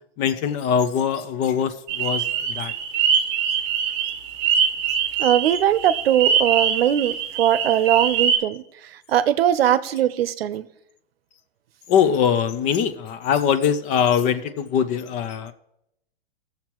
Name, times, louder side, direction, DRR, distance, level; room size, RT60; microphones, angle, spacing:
voice 1, 0.2-2.7 11.9-15.5, left 8 dB, 25° left, 0.4 m, -22 dB
sound 1, 1.9-8.4, right 7 dB, 35° right, 0.9 m, -23 dB
voice 2, 5.2-8.6 9.1-10.7, right 10 dB, 90° right, 0.7 m, -20 dB
18.5 x 7.1 x 3.0 m
hypercardioid pair, 145°, 29 cm